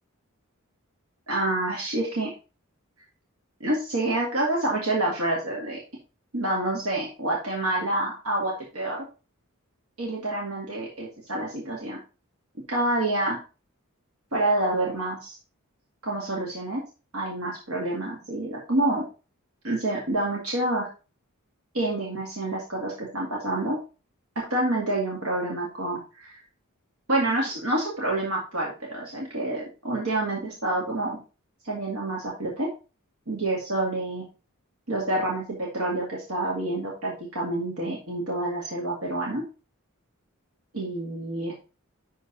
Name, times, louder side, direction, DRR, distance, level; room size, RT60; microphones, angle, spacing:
voice 1, 1.3-2.3 3.6-5.8 6.3-9.1 10.0-12.0 12.7-13.4 14.3-15.4 16.0-16.8 17.1-19.0 19.6-20.9 21.7-23.8 24.4-26.4 27.1-31.2 31.6-32.7 33.3-34.2 34.9-39.4 40.7-41.6, right 1 dB, 90° right, -3 dB, 2.2 m, -28 dB
11.5 x 4.0 x 4.0 m, 0.33 s
head